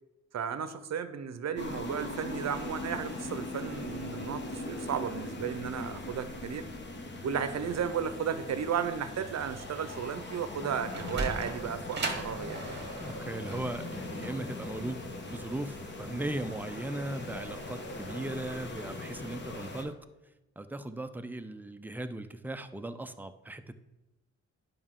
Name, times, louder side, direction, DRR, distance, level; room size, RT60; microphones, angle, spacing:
voice 1, 0.3-6.7 7.2-12.6, right 7 dB, 65° right, 12 dB, 0.6 m, -34 dB
sound 1, 1.6-19.8, left 2 dB, 40° left, 1.0 m, -40 dB
Sliding door, 10.6-15.8, right 3 dB, 35° right, 1.1 m, -38 dB
sound 2, 12.1-18.7, equal, 75° left, 1.7 m, -50 dB
voice 2, 13.0-20.0 20.6-23.7, right 1 dB, 5° right, 9 dB, 0.4 m, -38 dB
10.5 x 5.4 x 3.7 m, 1.0 s
wide cardioid pair, 145°, 29 cm